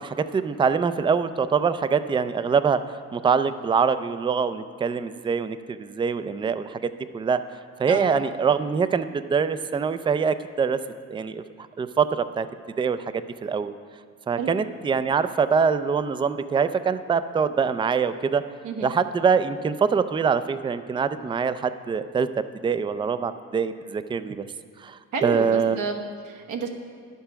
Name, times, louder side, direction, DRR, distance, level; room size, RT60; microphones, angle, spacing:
voice 1, 0.0-7.4 7.8-10.8 11.1-11.4 11.8-12.5 12.8-13.1 13.4-13.7 14.3-18.4 18.8-22.3 22.6-24.5 24.8-25.8, right 6 dB, 15° right, 12 dB, 0.4 m, -24 dB
voice 2, 25.1-26.7, right 5 dB, 85° right, 2 dB, 1.2 m, -30 dB
11.0 x 6.9 x 5.7 m, 2.1 s
cardioid pair, 90°, 30 cm